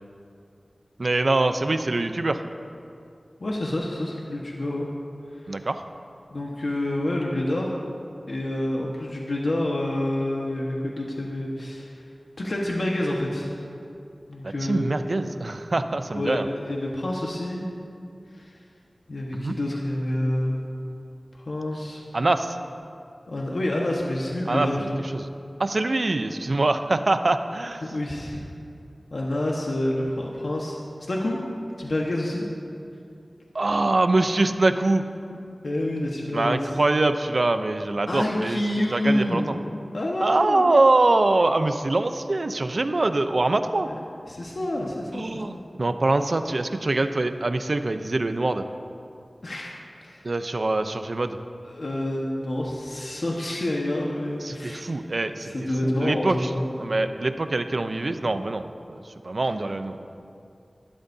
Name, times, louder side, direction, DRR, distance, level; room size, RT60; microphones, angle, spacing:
voice 1, 1.0-2.4 5.5-5.8 14.4-16.5 19.3-19.5 22.1-22.6 24.5-24.9 25.1-25.2 25.6-27.8 33.5-35.0 36.3-38.6 38.9-39.6 40.2-43.9 45.1-48.6 50.2-51.4 54.4-55.5 55.8-56.5 56.8-60.0, right 2 dB, 65° right, 8 dB, 0.6 m, -24 dB
voice 2, 3.4-4.9 5.4-5.7 6.3-7.8 8.3-12.0 12.4-13.5 14.3-14.9 16.1-17.7 18.3-18.6 19.1-20.6 21.3-22.0 23.3-25.0 27.8-28.5 29.1-31.4 31.8-32.5 35.6-36.7 38.1-39.5 39.9-40.6 43.8-44.0 44.3-45.6 49.4-49.7 50.0-50.3 51.6-55.0 55.4-56.6, left 1 dB, 75° left, -2 dB, 1.4 m, -28 dB
19.5 x 12.5 x 2.8 m, 2.5 s
wide cardioid pair, 50°, 0 cm